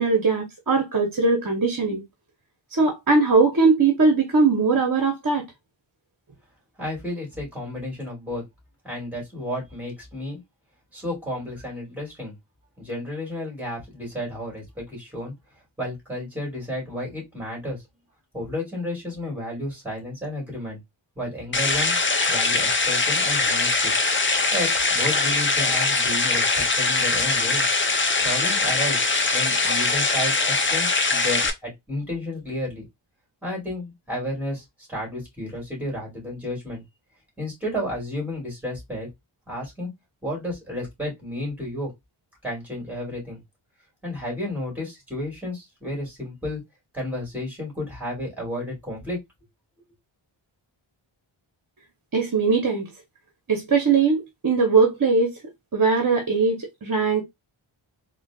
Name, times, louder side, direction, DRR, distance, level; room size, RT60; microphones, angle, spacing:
voice 1, 0.0-2.0 2.7-5.4 52.1-52.9 53.5-55.3 55.7-57.2, right 4 dB, 45° right, 0.9 m, -20 dB
voice 2, 6.8-8.4 8.8-10.4 10.9-12.3 12.8-15.3 15.8-17.8 18.3-20.8 21.2-22.0 22.3-23.9 24.5-27.6 28.2-29.0 29.3-32.8 33.4-34.6 34.9-36.8 37.4-39.1 39.5-39.9 40.2-41.9 42.4-43.4 44.0-46.6 46.9-49.2, left 1 dB, 5° right, 2.4 m, -32 dB
sound 1, 21.5-31.5, left 3 dB, 25° left, 0.5 m, -22 dB
3.9 x 2.3 x 2.3 m
wide cardioid pair, 95°, 49 cm